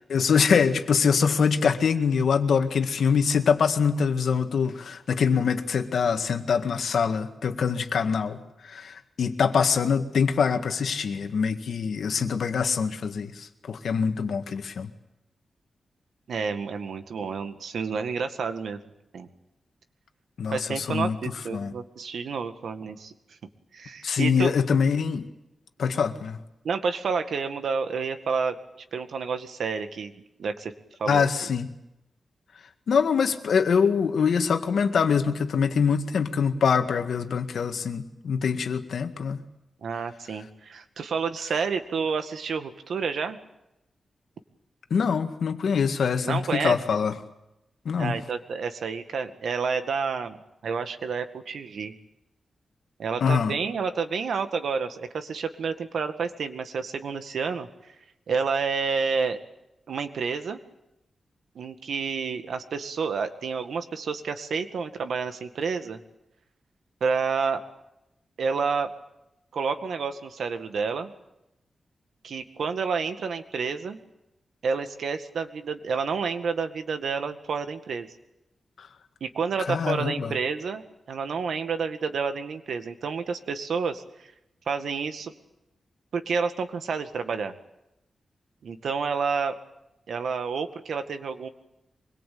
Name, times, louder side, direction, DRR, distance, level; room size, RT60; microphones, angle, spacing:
voice 1, 0.1-8.4 8.6-14.9 20.4-21.2 21.5-21.7 24.0-25.2 25.8-26.4 31.1-31.7 32.9-39.4 44.9-47.1 47.9-48.1 53.2-53.6 78.8-78.9 79.7-80.3, left 6 dB, 75° left, 7 dB, 1.9 m, -24 dB
voice 2, 16.3-18.8 19.1-19.3 20.5-23.1 23.7-24.5 26.6-28.6 28.9-30.1 30.4-30.7 31.0-31.5 39.8-43.4 46.2-47.0 48.0-50.4 50.6-51.9 53.0-57.7 58.3-59.4 59.9-60.6 61.6-66.0 67.0-67.6 68.4-68.9 69.5-71.1 72.2-74.0 74.6-78.2 79.2-84.0 84.7-85.3 86.1-87.5 88.6-89.6 90.1-91.5, right 5 dB, 80° right, 8 dB, 1.9 m, -29 dB
24.5 x 22.0 x 8.7 m, 0.89 s
wide cardioid pair, 155°, 0 cm